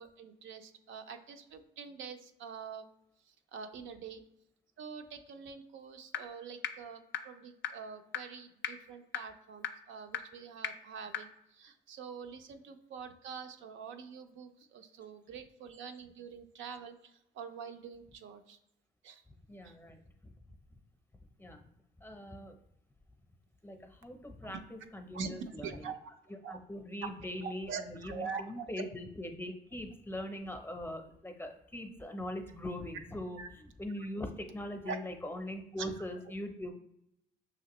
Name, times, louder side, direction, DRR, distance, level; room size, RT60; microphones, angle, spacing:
voice 1, 0.0-2.8 3.5-4.2 4.8-16.9 17.3-18.6 19.0-19.2 19.6-19.7 24.4-24.6 25.1-25.9 26.4-26.6 27.4-28.4 33.4-33.5 34.9-35.0 35.8-35.9, right 6 dB, 75° right, 7 dB, 0.5 m, -45 dB
sound 1, 6.1-6.2 6.6-6.7 7.1-7.2 7.6-7.7 8.1-8.2 8.6-8.7 9.1-9.2 9.6-9.7 10.1-10.2 10.6-10.7 11.1-11.2, left 10 dB, 65° left, 0.4 m, -33 dB
voice 2, 19.5-20.3 21.4-21.6 22.0-22.6 23.6-25.9 26.3-36.7, left 1 dB, 10° left, 4 dB, 0.6 m, -41 dB
5.7 x 3.0 x 2.9 m, 0.78 s
cardioid pair, 90°, 20 cm